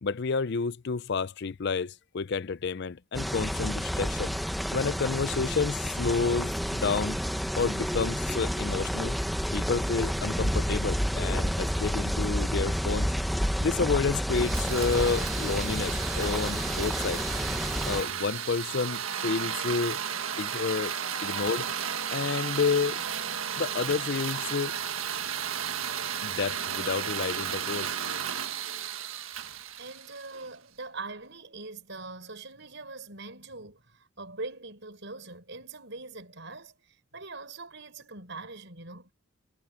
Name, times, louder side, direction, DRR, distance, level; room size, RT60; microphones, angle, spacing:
voice 1, 0.0-4.3 4.7-7.2 7.6-9.2 9.5-13.1 13.6-17.2 17.8-20.0 20.4-20.9 21.2-21.7 22.1-23.0 23.6-24.8 26.2-27.9, left 5 dB, 50° left, 0.4 m, -30 dB
sound 1, 3.1-18.0, equal, ahead, 0.9 m, -30 dB
sound 2, 14.3-30.5, right 8 dB, 70° right, 1.7 m, -34 dB
voice 2, 29.4-39.1, right 3 dB, 55° right, 7.0 m, -42 dB
head